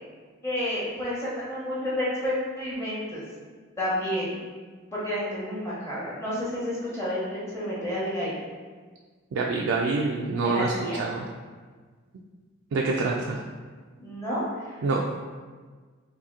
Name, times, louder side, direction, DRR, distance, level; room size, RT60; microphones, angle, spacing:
voice 1, 0.4-3.2 3.8-4.3 4.9-8.3 10.4-11.0 14.0-14.8, left 1 dB, 15° left, -8 dB, 0.9 m, -30 dB
voice 2, 9.3-10.7 11.0-11.3 12.7-13.4 14.8-15.0, right 3 dB, 70° right, -1 dB, 0.3 m, -26 dB
2.8 x 2.7 x 3.6 m, 1.5 s
head